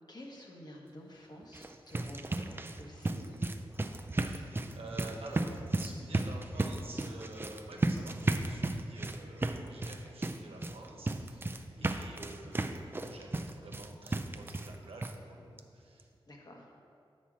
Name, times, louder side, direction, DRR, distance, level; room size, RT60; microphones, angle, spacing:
voice 1, 0.1-3.5 11.7-12.1 16.3-16.7, left 1 dB, 45° left, -1 dB, 1.2 m, -50 dB
sound 1, 1.4-14.8 15.0-15.1 15.6-15.7 16.0-16.1, right 2 dB, 25° right, 0.3 m, -35 dB
voice 2, 4.2-16.1, right 2 dB, 85° right, 0 dB, 1.0 m, -49 dB
7.2 x 4.3 x 6.1 m, 2.5 s
wide cardioid pair, 90°, 10 cm